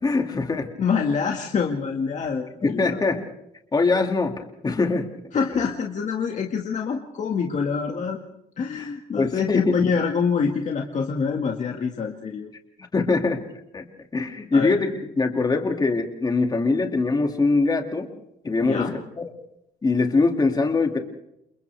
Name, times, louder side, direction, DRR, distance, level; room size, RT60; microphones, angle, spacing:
voice 1, 0.0-0.7 2.6-3.2 3.7-4.3 4.6-5.1 8.8-8.9 9.2-9.8 12.9-13.4 13.7-13.9 14.1-18.1 18.4-19.3 19.8-21.0, left 3 dB, 20° left, 4 dB, 2.4 m, -22 dB
voice 2, 0.8-3.0 5.3-8.2 8.6-12.5 14.5-14.8 18.6-18.9, left 5 dB, 45° left, 1 dB, 2.0 m, -26 dB
29.5 x 28.5 x 3.5 m, 0.83 s
cardioid pair, 175°, 18 cm